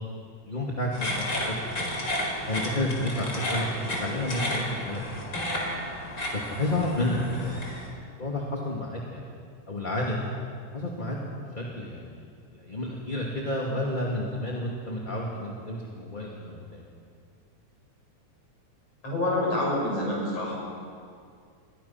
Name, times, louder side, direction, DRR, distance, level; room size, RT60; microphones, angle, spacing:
voice 1, 0.5-1.3 1.8-1.9 2.5-5.0 5.3-5.6 6.3-9.3 9.7-10.3 10.7-11.2 11.6-12.2 12.5-16.8, left 1 dB, 15° left, -3 dB, 2.1 m, -31 dB
sound 1, 0.9-7.9, left 1 dB, 35° left, 5.1 m, -32 dB
voice 2, 19.0-20.6, left 1 dB, 55° left, -4 dB, 9.1 m, -27 dB
28.0 x 23.5 x 5.9 m, 2.3 s
omnidirectional pair, 3.5 m